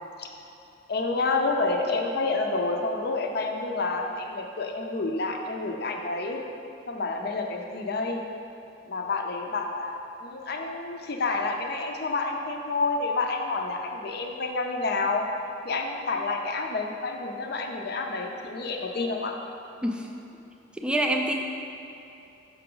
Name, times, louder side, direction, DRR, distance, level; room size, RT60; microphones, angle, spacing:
voice 1, 0.9-6.4 6.9-8.2 8.9-15.3 15.6-19.4, left 3 dB, 55° left, 3 dB, 0.6 m, -29 dB
voice 2, 20.7-21.3, right 1 dB, 5° right, 2 dB, 0.4 m, -26 dB
5.9 x 5.7 x 3.8 m, 2.7 s
head